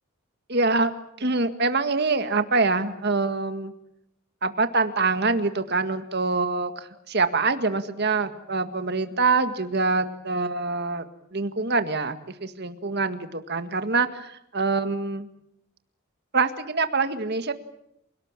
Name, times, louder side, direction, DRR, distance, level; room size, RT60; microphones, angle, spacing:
voice 1, 0.5-0.9 1.2-3.7 4.4-15.3 16.3-17.5, right 3 dB, 50° right, 9 dB, 1.9 m, -25 dB
28.0 x 18.5 x 9.0 m, 0.80 s
head